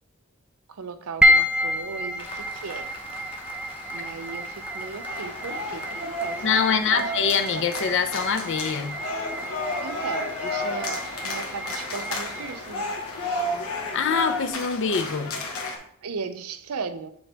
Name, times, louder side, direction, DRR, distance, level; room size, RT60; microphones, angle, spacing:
voice 1, 0.7-2.9 3.9-7.0 7.5-7.6 9.8-12.9 13.2-13.5 16.0-17.1, right 5 dB, 90° right, 10 dB, 0.6 m, -36 dB
sound 1, 1.2-15.7, equal, 5° right, 0.3 m, -30 dB
Applause, 2.2-14.5, left 3 dB, 25° left, 0.7 m, -44 dB
sound 2, 5.1-15.8, left 2 dB, 75° left, 1.2 m, -32 dB
voice 2, 6.4-9.0 13.9-15.4, left 6 dB, 60° left, 8 dB, 0.6 m, -24 dB
7.0 x 4.0 x 3.4 m, 0.65 s
head